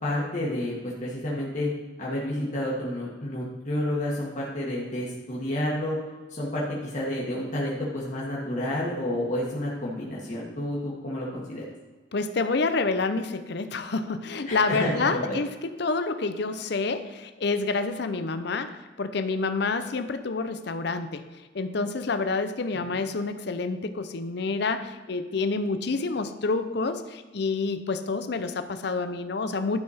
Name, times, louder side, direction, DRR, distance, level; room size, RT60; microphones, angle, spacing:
voice 1, 0.0-1.7 2.0-6.0 6.3-11.6 14.5-15.4, left 1 dB, 40° left, -6 dB, 1.7 m, -30 dB
voice 2, 12.1-29.8, left 3 dB, 60° left, 10 dB, 0.6 m, -28 dB
11.5 x 5.8 x 4.3 m, 1.3 s
head